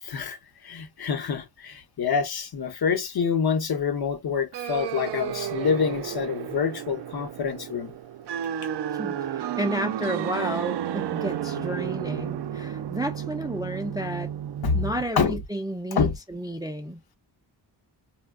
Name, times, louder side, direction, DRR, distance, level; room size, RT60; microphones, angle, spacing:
voice 1, 0.0-7.9 14.6-14.8 15.2-15.4 15.9-16.2, left 6 dB, 55° left, 0.8 m, -26 dB
sound 1, 4.5-15.0, right 10 dB, 65° right, 0.5 m, -32 dB
voice 2, 8.9-14.3 14.7-17.0, equal, 10° right, 0.3 m, -32 dB
4.2 x 2.1 x 2.3 m
wide cardioid pair, 100°, 44 cm